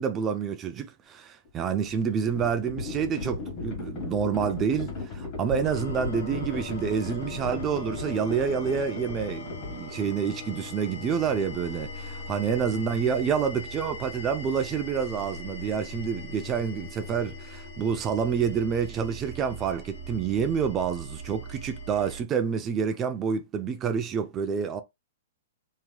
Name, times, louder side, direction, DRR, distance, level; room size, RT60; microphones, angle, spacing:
voice 1, 0.0-24.8, right 7 dB, 20° right, 0.3 m, -28 dB
Livestock farm animals working animals, 1.5-10.5, left 3 dB, 40° left, 1.4 m, -36 dB
sound 1, 5.6-22.2, equal, 85° left, 1.4 m, -40 dB
2.9 x 2.8 x 2.2 m
hypercardioid pair, 150°, 0 cm